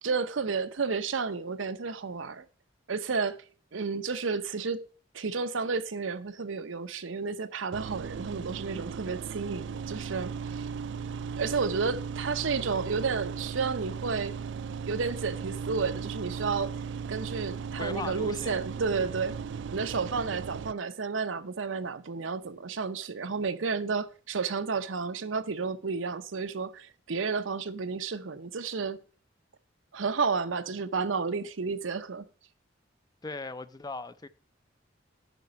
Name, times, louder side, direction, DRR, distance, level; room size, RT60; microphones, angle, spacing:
voice 1, 0.0-2.5 2.9-3.4 3.7-4.8 5.1-10.7 11.4-14.4 14.9-16.7 17.1-19.4 19.7-29.0 29.9-32.2, right 5 dB, 85° right, 0.7 m, -31 dB
sound 1, 7.7-20.7, right 6 dB, 65° right, 0.3 m, -37 dB
voice 2, 17.8-18.6 33.2-34.3, left 3 dB, 20° left, 0.4 m, -38 dB
9.1 x 5.9 x 5.3 m
head